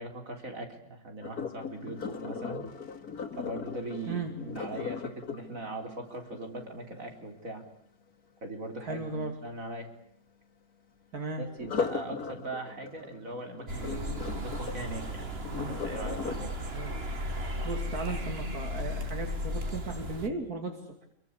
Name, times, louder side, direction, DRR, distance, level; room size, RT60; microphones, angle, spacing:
voice 1, 0.0-2.6 3.3-7.6 8.4-9.9 11.4-15.3 15.7-16.6, right 2 dB, 65° right, 4 dB, 4.6 m, -40 dB
Sink (filling or washing), 1.2-7.2 11.5-18.6 19.1-19.4 19.9-20.0, left 6 dB, 90° left, 2.7 m, -39 dB
voice 2, 8.8-9.3 11.1-11.4 16.7-16.9 17.6-21.1, right 3 dB, 85° right, 4 dB, 3.1 m, -36 dB
sound 1, 13.7-20.3, equal, 45° right, 2.1 m, -35 dB
27.0 x 22.5 x 8.4 m, 0.69 s
omnidirectional pair, 1.5 m